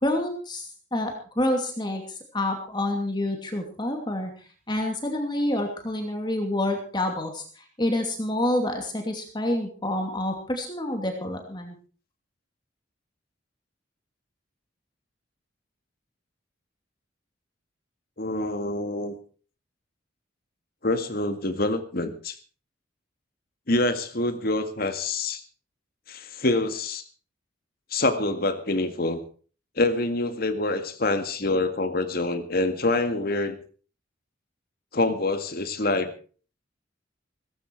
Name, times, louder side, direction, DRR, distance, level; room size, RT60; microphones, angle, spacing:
voice 1, 0.0-4.3 4.7-11.8, left 1 dB, 25° left, 3 dB, 2.6 m, -28 dB
voice 2, 18.2-19.2 20.8-22.4 23.7-25.4 26.1-27.0 27.9-29.2 29.8-33.6 34.9-36.1, left 2 dB, 50° left, 9 dB, 2.0 m, -26 dB
17.5 x 15.0 x 4.7 m, 0.40 s
head